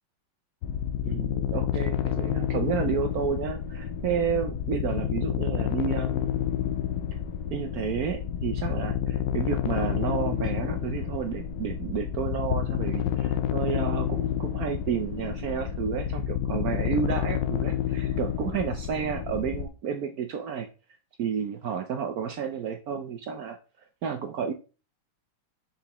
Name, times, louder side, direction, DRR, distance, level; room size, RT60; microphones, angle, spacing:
sound 1, 0.6-19.7, left 9 dB, 70° left, 1.2 m, -29 dB
voice 1, 1.0-6.3 7.5-20.7 21.2-23.6 24.0-24.5, right 7 dB, 75° right, 6 dB, 0.8 m, -31 dB
7.0 x 5.8 x 2.9 m, 0.34 s
omnidirectional pair, 2.3 m